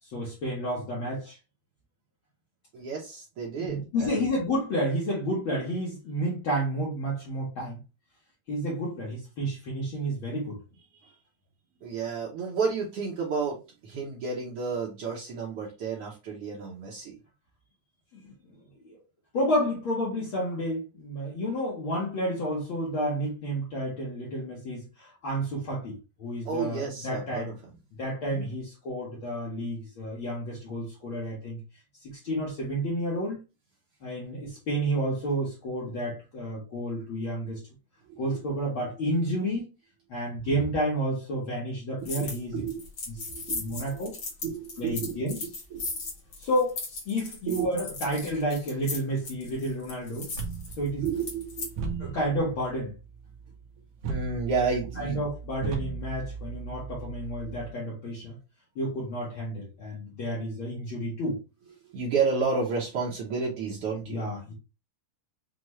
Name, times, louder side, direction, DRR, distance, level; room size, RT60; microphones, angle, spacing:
voice 1, 0.0-1.4 3.6-7.8 8.5-10.6 18.1-18.5 18.8-19.0 19.3-27.5 28.0-31.6 32.0-33.4 34.0-37.6 38.2-39.7 40.1-42.7 43.1-43.2 43.5-44.2 44.8-45.4 46.4-50.3 50.8-51.0 52.0-52.9 55.0-58.4 58.7-61.4 64.1-64.5, equal, 75° left, 1.1 m, -30 dB
voice 2, 2.7-4.2 11.0-11.1 11.8-17.1 26.4-27.5 28.2-28.5 38.1-38.2 40.5-40.6 42.0-42.8 43.2-44.1 44.4-45.1 45.4-45.8 47.5-47.7 51.0-52.1 54.1-55.2 61.8-64.2, right 5 dB, 85° right, 1.2 m, -31 dB
sound 1, 42.0-42.4 42.7-51.7, left 3 dB, 50° left, 1.4 m, -37 dB
sound 2, 50.3-57.7, right 5 dB, 65° right, 1.9 m, -38 dB
6.0 x 2.3 x 3.1 m
omnidirectional pair, 3.9 m